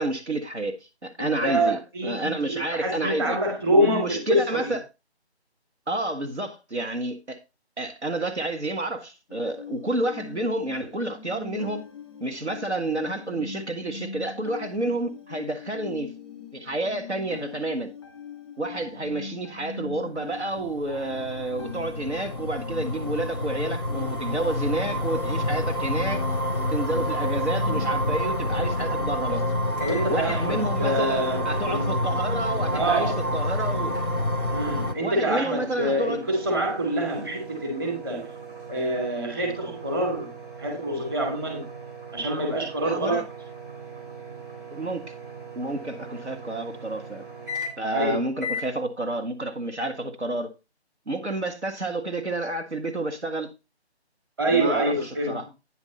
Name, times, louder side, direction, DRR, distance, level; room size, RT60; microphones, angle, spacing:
voice 1, 0.0-3.4 3.8-4.8 5.9-7.4 7.8-11.8 12.2-16.1 16.5-17.9 18.6-26.2 26.7-29.5 30.1-34.0 35.0-36.2 37.2-37.3 42.9-43.2 44.7-45.2 45.6-47.2 47.8-50.5 51.1-53.5 54.5-55.5, right 2 dB, 80° right, 1.9 m, -30 dB
voice 2, 1.2-4.7 29.8-31.9 32.7-33.2 34.5-38.3 38.7-41.6 42.1-43.2 47.9-48.2 54.4-55.5, right 1 dB, 20° right, 2.6 m, -26 dB
sound 1, 9.3-28.1, left 6 dB, ahead, 1.3 m, -42 dB
sound 2, 20.6-34.9, left 1 dB, 20° left, 0.6 m, -28 dB
sound 3, 29.8-48.0 48.4-48.7, right 1 dB, 50° right, 3.6 m, -40 dB
9.6 x 6.3 x 4.2 m
figure-of-eight pair, 160°, 33 cm